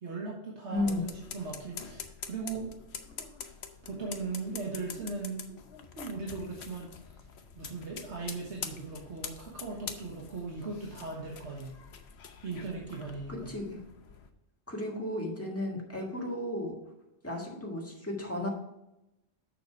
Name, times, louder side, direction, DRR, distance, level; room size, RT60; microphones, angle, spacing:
voice 1, 0.0-2.7 3.8-5.6 5.9-7.2 7.5-11.7 12.4-13.5, right 4 dB, 90° right, -2 dB, 1.6 m, -38 dB
voice 2, 0.7-1.0 13.3-13.8 14.7-16.8 17.2-18.5, left 1 dB, 15° left, -1 dB, 1.6 m, -34 dB
sound 1, 0.8-14.3, left 6 dB, 75° left, 1.0 m, -45 dB
6.8 x 6.4 x 4.6 m, 0.90 s
omnidirectional pair, 1.1 m